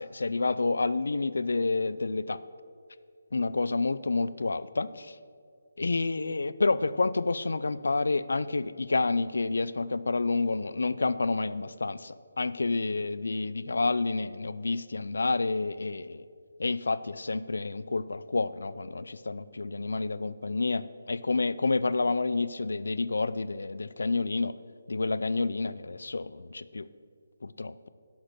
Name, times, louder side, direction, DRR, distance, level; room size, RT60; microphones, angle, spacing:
voice 1, 0.0-2.4 3.3-5.2 5.8-16.3 16.6-24.5 24.9-26.9 27.4-27.7, left 3 dB, 80° left, 15 dB, 0.5 m, -29 dB
11.5 x 5.9 x 6.5 m, 2.2 s
hypercardioid pair, 170°, 0 cm